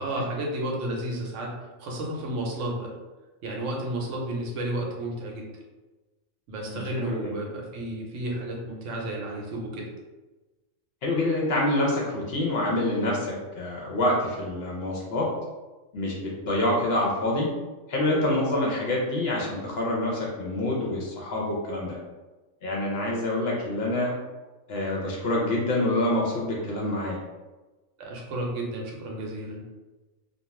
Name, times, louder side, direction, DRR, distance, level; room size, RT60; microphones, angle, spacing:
voice 1, 0.0-1.5 1.8-2.9 3.4-5.5 6.5-9.9 28.0-29.6, right 1 dB, 70° right, -1 dB, 0.9 m, -32 dB
voice 2, 6.6-7.3 11.0-15.3 15.9-17.5 17.9-22.0 22.6-24.1 24.7-27.2, left 1 dB, 60° left, -3 dB, 0.7 m, -26 dB
2.4 x 2.3 x 3.0 m, 1.2 s
omnidirectional pair, 1.3 m